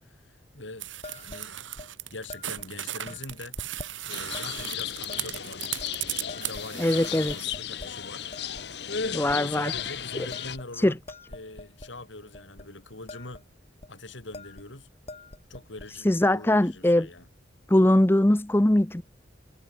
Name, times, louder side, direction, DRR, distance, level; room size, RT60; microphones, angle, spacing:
voice 1, 0.0-1.7 2.1-3.6 4.0-5.7 6.2-8.3 9.3-11.0 11.3-13.4 13.9-14.9 15.5-17.3, left 2 dB, 80° left, 3.6 m, -43 dB
sound 1, 0.8-7.4, right 12 dB, 85° right, 1.7 m, -36 dB
sound 2, 1.0-1.4 1.8-1.9 2.3-2.6 3.1-3.9 4.3-4.7 5.1-5.4 5.8-5.9 6.3-6.8 7.0-7.9 8.3-8.7 9.0-9.4 9.7-9.9 10.3-11.9 12.3-12.7 12.9-13.4 13.7-13.9 14.3-14.7 14.9-15.9, left 2 dB, 35° left, 2.9 m, -44 dB
sound 3, 4.1-10.6, left 8 dB, 60° left, 1.3 m, -35 dB
voice 2, 6.8-7.3 9.1-9.7 10.7-10.9 16.0-17.1 17.7-19.0, left 1 dB, 10° left, 0.6 m, -21 dB
head